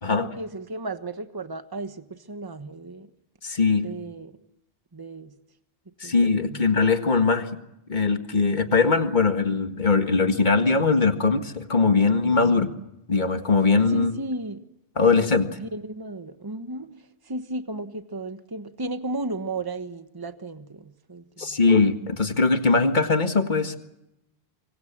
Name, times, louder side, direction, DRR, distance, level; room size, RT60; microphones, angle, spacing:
voice 1, 0.0-3.1 3.8-4.4 4.9-5.3 6.0-6.6 12.4-12.8 13.9-14.6 15.0-15.1 15.6-21.6, right 2 dB, 20° right, 9 dB, 1.3 m, -34 dB
voice 2, 3.4-3.9 6.0-7.5 7.9-12.7 13.1-14.1 15.0-15.5 21.4-23.8, left 4 dB, 50° left, 7 dB, 2.0 m, -21 dB
25.0 x 25.0 x 7.4 m, 0.87 s
omnidirectional pair, 1.0 m